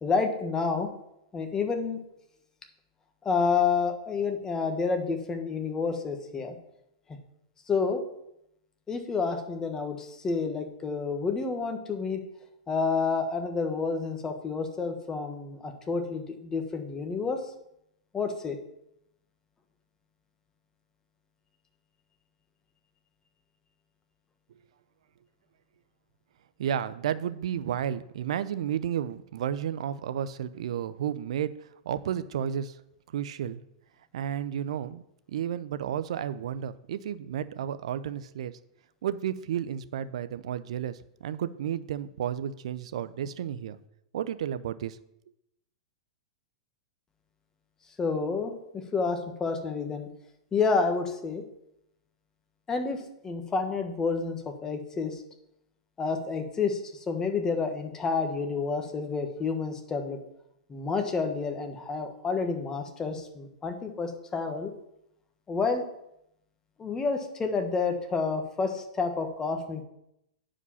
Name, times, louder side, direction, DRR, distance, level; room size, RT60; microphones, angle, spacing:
voice 1, 0.0-0.9 1.3-2.0 3.2-6.5 7.7-8.0 8.9-12.2 12.7-17.4 18.1-18.6 48.0-48.5 48.9-50.1 50.5-51.4 52.7-55.2 56.0-60.2 60.7-64.7 65.5-65.8 66.8-69.8, left 4 dB, 15° left, 5 dB, 1.4 m, -29 dB
voice 2, 26.6-32.8 33.1-33.6 34.1-35.0 35.3-38.6 39.0-43.8 44.1-45.0, right 9 dB, 75° right, 13 dB, 0.6 m, -32 dB
9.7 x 5.0 x 5.6 m, 0.80 s
hypercardioid pair, 130°, 3 cm